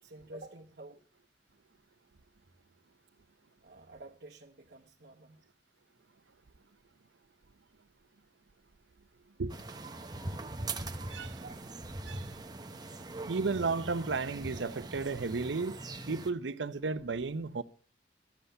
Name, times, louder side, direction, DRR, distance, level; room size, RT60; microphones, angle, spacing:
voice 1, 0.0-1.0 3.6-5.4 11.4-11.6, right 2 dB, 65° right, 1.1 m, -50 dB
sound 1, 9.5-16.3, right 2 dB, 25° right, 0.9 m, -41 dB
voice 2, 11.1-11.4 12.1-12.3 13.3-15.8 16.1-17.6, right 4 dB, 90° right, 0.7 m, -33 dB
13.0 x 8.0 x 6.6 m
head